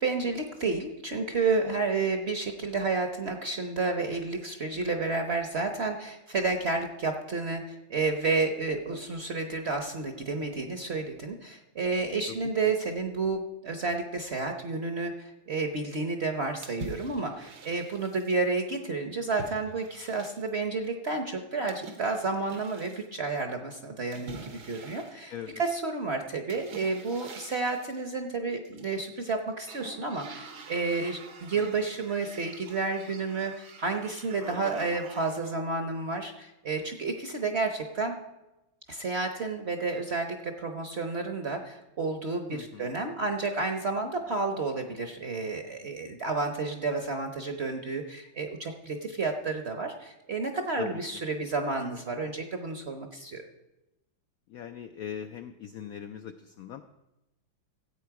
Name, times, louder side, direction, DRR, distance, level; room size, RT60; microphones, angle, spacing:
voice 1, 0.0-38.2 38.9-53.4, right 3 dB, 50° right, 5 dB, 0.8 m, -31 dB
sound 1, 16.6-18.4 19.4-20.7 21.7-23.1 24.1-25.8 26.5-28.0 28.6-29.3 29.6-35.6, right 4 dB, 85° right, 2.1 m, -46 dB
voice 2, 25.3-25.6 42.5-42.9 50.8-51.2 54.5-56.8, left 9 dB, 85° left, 8 dB, 0.7 m, -40 dB
14.5 x 8.5 x 4.7 m, 0.96 s
omnidirectional pair, 2.2 m